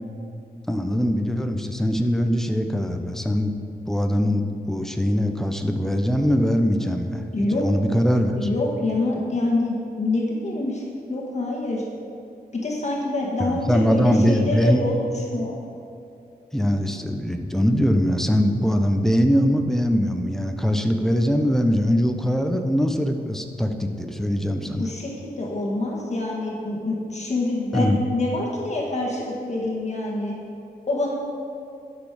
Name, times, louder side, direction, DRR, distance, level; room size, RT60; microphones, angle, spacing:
voice 1, 0.7-3.6 3.9-8.5 13.4-14.8 16.5-24.8 27.7-28.0, equal, 5° left, 5 dB, 0.8 m, -22 dB
voice 2, 7.3-7.6 8.3-10.8 11.1-11.8 12.5-15.0 15.3-15.6 24.8-30.3 30.9-31.1, left 2 dB, 45° left, -3 dB, 1.7 m, -26 dB
12.0 x 6.4 x 5.0 m, 2.6 s
wide cardioid pair, 85°, 16 cm